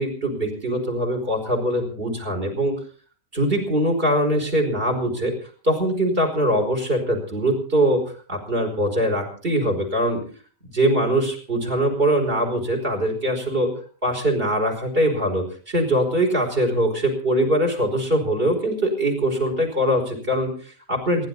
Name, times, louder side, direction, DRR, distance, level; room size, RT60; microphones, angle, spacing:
voice 1, 0.0-2.8 3.3-8.0 8.3-10.2 10.7-13.7 14.0-21.3, right 1 dB, 40° right, 4 dB, 5.4 m, -22 dB
28.0 x 12.0 x 4.1 m, 0.43 s
omnidirectional pair, 1.4 m